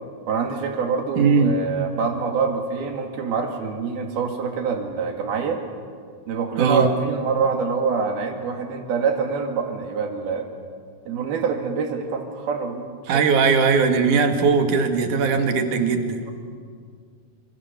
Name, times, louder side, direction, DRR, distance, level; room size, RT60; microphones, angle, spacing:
voice 1, 0.3-5.6 6.3-10.5 11.1-12.9, right 5 dB, 90° right, 3 dB, 4.2 m, -25 dB
voice 2, 1.2-1.5 6.6-6.8 13.1-16.2, right 5 dB, 60° right, 5 dB, 3.3 m, -19 dB
28.5 x 26.0 x 7.0 m, 2.1 s
omnidirectional pair, 4.2 m